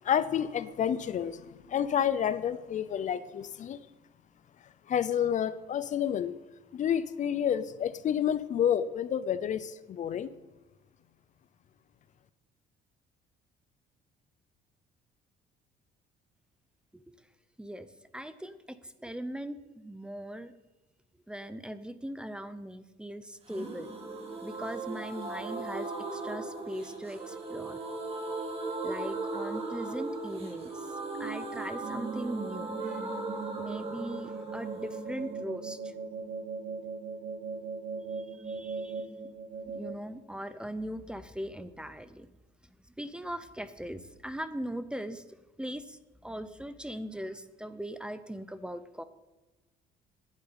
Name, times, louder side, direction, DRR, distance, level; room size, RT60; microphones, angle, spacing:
voice 1, 0.0-1.4 1.7-3.8 4.9-6.3 6.7-10.3, left 9 dB, 45° left, 15 dB, 0.6 m, -29 dB
voice 2, 18.1-18.6 19.0-20.5 21.3-23.9 24.4-27.8 28.8-30.7 31.2-33.1 33.6-35.9 38.2-39.1 39.7-42.3 43.0-45.2 45.6-46.0 46.2-49.0, equal, 5° right, 13 dB, 0.6 m, -40 dB
sound 1, 23.5-37.1 37.3-37.4 37.7-37.8, right 3 dB, 35° right, 2.6 m, -38 dB
sound 2, 31.8-39.9, right 4 dB, 60° right, 1.7 m, -40 dB
9.8 x 7.7 x 9.3 m, 1.1 s
cardioid pair, 110°, 17 cm